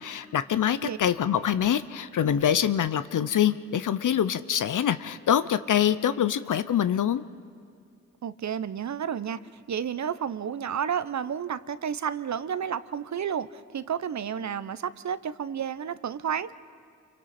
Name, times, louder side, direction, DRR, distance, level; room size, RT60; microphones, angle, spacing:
voice 1, 0.0-7.2, left 9 dB, 65° left, 13 dB, 0.6 m, -25 dB
voice 2, 8.2-9.4 9.7-16.6, right 8 dB, 55° right, 15 dB, 0.7 m, -31 dB
27.5 x 24.0 x 4.2 m, 2.1 s
cardioid pair, 45°, 34 cm